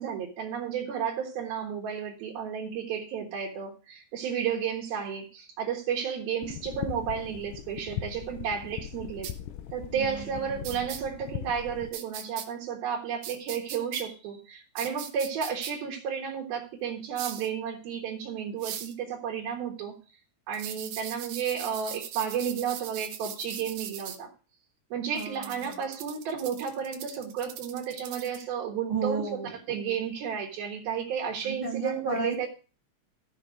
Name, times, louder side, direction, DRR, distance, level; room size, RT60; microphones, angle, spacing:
voice 1, 0.0-9.3 9.7-19.9 20.5-24.3 24.9-29.2 29.7-32.5, right 7 dB, 65° right, -2 dB, 3.1 m, -32 dB
sound 1, 6.4-11.9, left 11 dB, 80° left, 1.9 m, -39 dB
sound 2, 9.2-9.3 10.6-11.0 11.9-12.5 13.2-14.0 14.8-15.7 17.2-17.5 18.6-18.9 20.5-24.2 25.2-28.4, right 10 dB, 85° right, 1.7 m, -39 dB
voice 2, 9.9-10.8 25.1-25.8 28.9-29.6 31.4-32.5, right 3 dB, 10° right, -1 dB, 2.3 m, -35 dB
14.5 x 5.8 x 5.0 m, 0.35 s
omnidirectional pair, 5.0 m